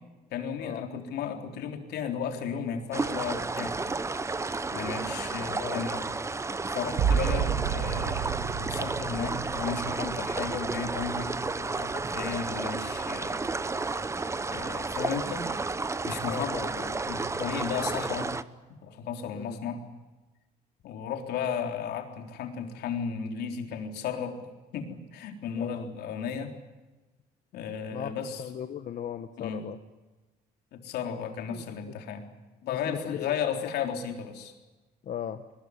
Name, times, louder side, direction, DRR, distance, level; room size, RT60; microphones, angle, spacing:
voice 1, 0.3-3.8 4.7-6.1 6.7-13.4 14.5-15.5 16.0-18.4 18.8-19.8 20.8-24.5 24.7-26.6 27.5-28.4 29.4-29.6 30.7-32.3 32.7-34.5, left 7 dB, 75° left, 4 dB, 3.9 m, -34 dB
sound 1, 2.9-18.4, right 3 dB, 15° right, 0.9 m, -32 dB
voice 2, 5.5-5.8 16.3-16.7 19.3-19.6 25.6-25.8 27.9-28.1 28.4-29.8 31.5-31.9 32.6-33.4 35.0-35.4, left 9 dB, 50° left, 8 dB, 1.3 m, -37 dB
sound 2, 7.0-12.4 12.9-13.5, right 8 dB, 65° right, 1.9 m, -32 dB
22.0 x 20.5 x 9.8 m, 1.2 s
cardioid pair, 110°, 17 cm